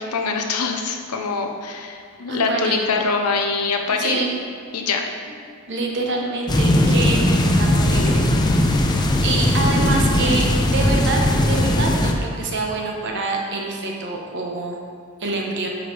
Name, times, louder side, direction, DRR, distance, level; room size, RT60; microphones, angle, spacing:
voice 1, 0.0-4.2 4.7-5.1, left 4 dB, 85° left, 3 dB, 0.8 m, -24 dB
voice 2, 2.3-2.8 4.0-4.3 5.7-8.9 9.2-14.8 15.2-15.7, right 3 dB, 55° right, 0 dB, 1.1 m, -26 dB
sound 1, 6.5-12.1, left 1 dB, 20° left, 0.5 m, -18 dB
12.0 x 5.1 x 3.3 m, 2.2 s
head